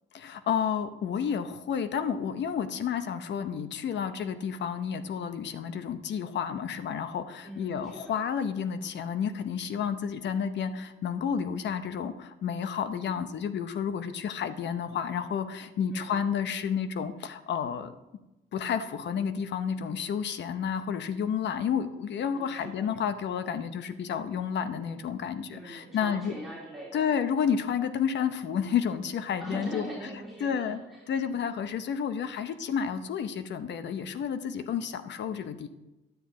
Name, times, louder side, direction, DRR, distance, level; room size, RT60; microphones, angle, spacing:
voice 1, 0.1-17.9 18.5-26.3 26.9-29.9 30.4-30.8 31.1-35.7, left 7 dB, 65° left, 11 dB, 0.8 m, -31 dB
voice 2, 7.4-8.2 15.9-16.3 22.3-23.0 25.5-27.1 29.4-31.5 32.3-32.5, right 1 dB, ahead, -6 dB, 2.7 m, -42 dB
10.5 x 9.1 x 3.7 m, 1.0 s
cardioid pair, 90°, 20 cm